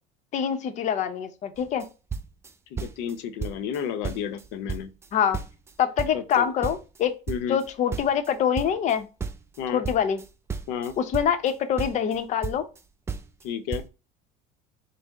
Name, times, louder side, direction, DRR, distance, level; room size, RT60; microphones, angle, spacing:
voice 1, 0.3-1.9 5.1-5.4 5.8-7.1 7.5-9.1 9.7-10.2 11.0-12.7, left 8 dB, 40° left, 0.7 m, -25 dB
sound 1, 1.6-3.1 3.4-3.8 4.0-5.7 6.0-8.9 9.2-11.5 11.8-12.8 13.1-13.5 13.7-13.9, right 5 dB, 15° right, 0.3 m, -34 dB
voice 2, 2.7-4.9 6.1-6.5 7.3-7.6 9.6-9.8 10.7-10.9 13.4-13.8, left 8 dB, 70° left, 0.7 m, -31 dB
5.5 x 2.1 x 3.4 m
cardioid pair, 135°, 19 cm